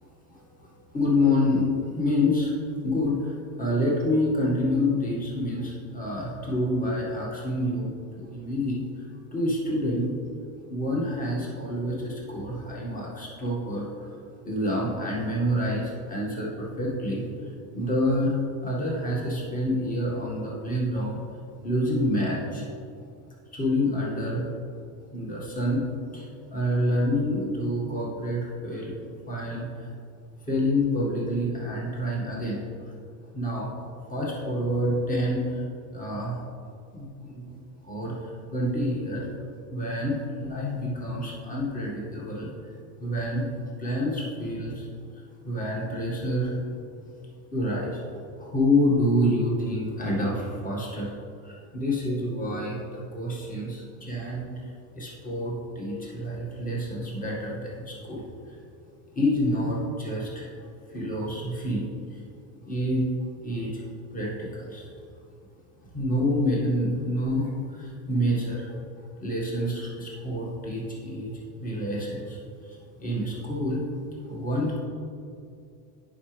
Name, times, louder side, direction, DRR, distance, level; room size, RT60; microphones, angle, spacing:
voice 1, 0.9-2.5 2.8-8.8 9.3-10.1 10.7-14.1 14.4-21.2 21.6-22.7 23.5-24.4 25.1-25.8 26.1-29.9 30.4-32.6 33.3-33.7 34.1-35.6 35.9-36.4 36.9-37.5 37.8-39.3 39.7-42.5 43.0-43.5 43.8-44.9 45.4-46.6 47.5-48.0 48.4-51.1 51.4-58.2 59.1-61.8 62.1-62.2 62.6-63.0 63.4-63.8 64.1-64.9 65.9-68.7 69.2-71.3 71.6-73.8 74.3-74.8, left 1 dB, 15° left, -4 dB, 1.9 m, -28 dB
9.7 x 5.3 x 3.4 m, 2.4 s
supercardioid pair, 100°, 48 cm